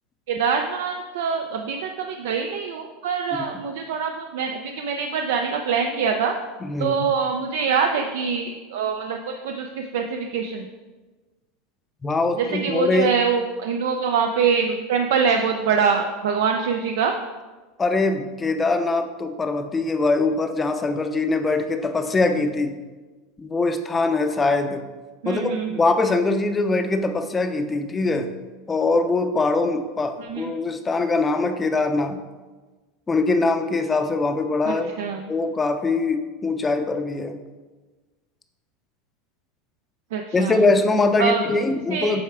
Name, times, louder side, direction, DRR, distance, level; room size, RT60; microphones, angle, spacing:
voice 1, 0.3-6.4 6.8-10.7 12.4-17.1 25.2-25.8 30.2-30.5 34.7-35.3 40.1-40.6 41.2-41.5 41.7-42.2, right 6 dB, 80° right, 4 dB, 0.4 m, -24 dB
voice 2, 6.6-7.0 12.0-13.1 17.8-22.8 23.4-24.8 25.3-28.3 28.7-32.2 33.1-34.9 35.3-37.4 40.3-42.2, left 3 dB, 15° left, 7 dB, 0.5 m, -22 dB
7.7 x 3.4 x 4.7 m, 1.3 s
supercardioid pair, 135°, 0 cm